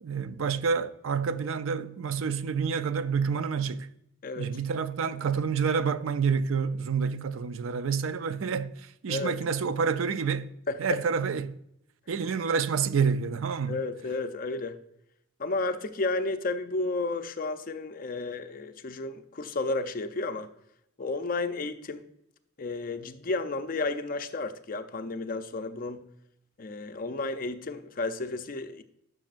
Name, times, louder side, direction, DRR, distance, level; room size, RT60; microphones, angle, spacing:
voice 1, 0.0-3.9 4.4-10.5 10.8-11.6 12.1-13.8, right 6 dB, 80° right, 0.4 m, -28 dB
voice 2, 4.2-4.6 9.1-9.4 10.7-10.8 13.7-14.8 15.4-20.5 21.0-22.0 22.6-26.0 26.6-28.8, left 3 dB, 45° left, 0.6 m, -32 dB
11.5 x 6.2 x 2.5 m
head